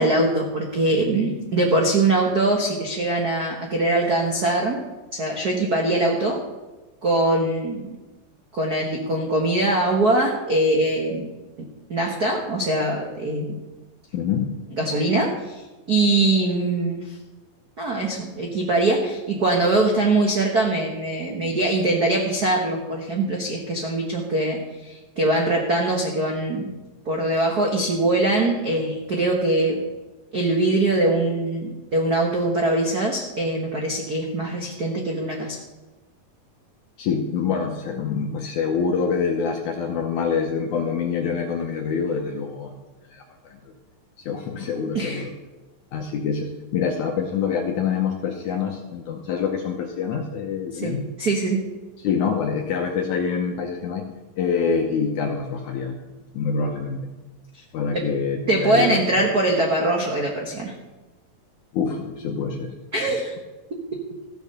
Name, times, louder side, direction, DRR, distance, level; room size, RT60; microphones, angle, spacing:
voice 1, 0.0-4.8 5.1-6.4 7.0-7.8 8.5-11.3 11.9-13.6 14.8-15.6 15.9-17.2 17.8-26.7 27.0-29.8 30.3-35.6 44.9-45.3 50.7-50.9 51.2-51.6 57.9-58.1 58.5-60.7 62.9-63.3 63.7-64.0, right 2 dB, 70° right, 0 dB, 0.9 m, -22 dB
voice 2, 14.1-14.5 37.0-42.8 43.1-43.6 44.3-45.3 45.9-51.1 52.0-54.0 54.4-56.0 56.3-57.0 57.7-59.0 61.7-62.7, left 6 dB, 70° left, 2 dB, 2.2 m, -26 dB
15.0 x 7.1 x 6.8 m, 1.1 s
omnidirectional pair, 4.0 m